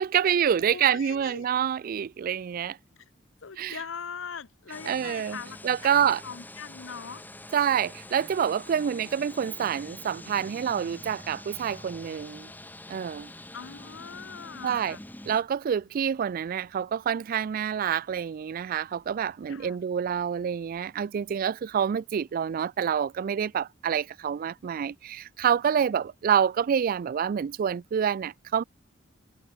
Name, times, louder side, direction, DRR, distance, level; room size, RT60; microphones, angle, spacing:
voice 1, 0.0-2.8 3.6-3.8 4.9-5.4 5.6-6.2 7.5-12.5 12.9-13.3 14.6-15.0 15.3-28.6, right 8 dB, 45° right, 0.3 m, -27 dB
voice 2, 0.7-1.5 3.0-3.1 3.4-7.2 13.5-15.0 19.5-19.8, left 6 dB, 90° left, 0.9 m, -41 dB
sound 1, 4.7-15.4, left 1 dB, 10° left, 1.4 m, -45 dB
head